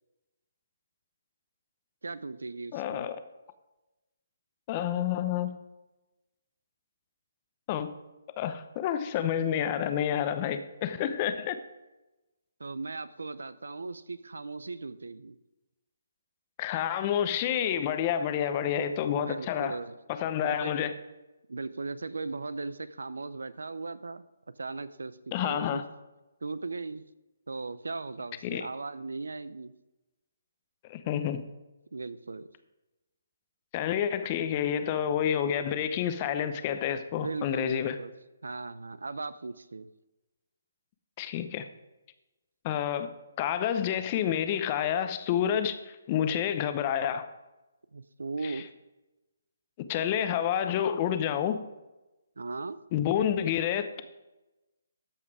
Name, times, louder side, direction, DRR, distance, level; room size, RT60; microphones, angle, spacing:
voice 1, 2.0-3.0 12.6-15.4 19.1-20.0 20.4-20.7 21.5-24.2 24.6-25.2 25.4-25.8 26.4-27.0 27.5-29.7 31.9-32.5 34.2-34.3 37.1-38.1 38.4-39.9 47.9-48.7 52.4-52.8, right 3 dB, 80° right, 0.6 m, -38 dB
voice 2, 2.7-3.2 4.7-5.6 7.7-7.9 8.4-11.6 16.6-19.8 20.1-20.9 25.3-25.8 28.4-28.6 30.9-31.4 33.7-38.0 41.2-41.7 42.6-43.1 43.4-47.3 48.4-48.6 49.9-51.6 52.9-54.0, left 9 dB, 30° left, 0.7 m, -29 dB
13.5 x 5.8 x 4.8 m
hypercardioid pair, 150°, 0 cm